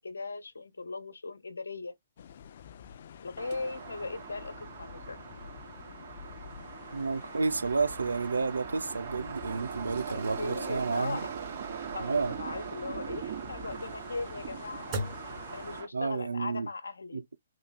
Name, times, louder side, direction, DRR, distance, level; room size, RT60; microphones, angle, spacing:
voice 1, 0.0-1.9 3.2-5.2 10.1-11.3 11.9-17.2, left 3 dB, 80° left, 1.0 m, -39 dB
sound 1, 2.2-15.8, left 7 dB, 55° left, 0.4 m, -48 dB
sound 2, 3.4-15.9, right 8 dB, 55° right, 1.9 m, -41 dB
voice 2, 6.9-11.2 12.0-12.3 15.9-16.7 17.1-17.3, right 4 dB, 85° right, 0.5 m, -31 dB
sound 3, 13.5-16.3, right 1 dB, 30° right, 2.1 m, -44 dB
3.8 x 3.0 x 2.3 m
hypercardioid pair, 135°, 0 cm